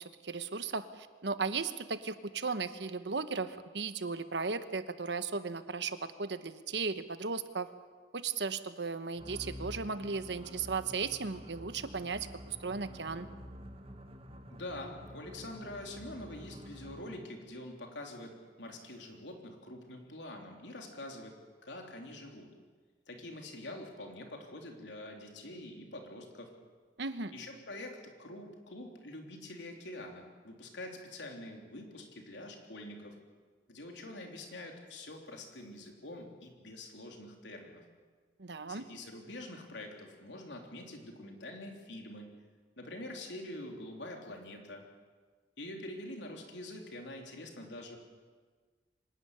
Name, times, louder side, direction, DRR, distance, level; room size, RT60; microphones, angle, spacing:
voice 1, 0.0-7.7 8.1-13.3 27.0-27.3 38.4-38.8, right 4 dB, 75° right, 11 dB, 1.1 m, -36 dB
sound 1, 9.2-17.4, equal, 35° right, 1.6 m, -49 dB
voice 2, 14.5-21.4 21.6-22.5 23.1-26.5 27.3-33.2 33.7-37.8 38.7-42.3 42.8-44.8 45.6-48.0, left 1 dB, 80° left, 2 dB, 3.6 m, -45 dB
25.0 x 12.0 x 9.8 m, 1.5 s
head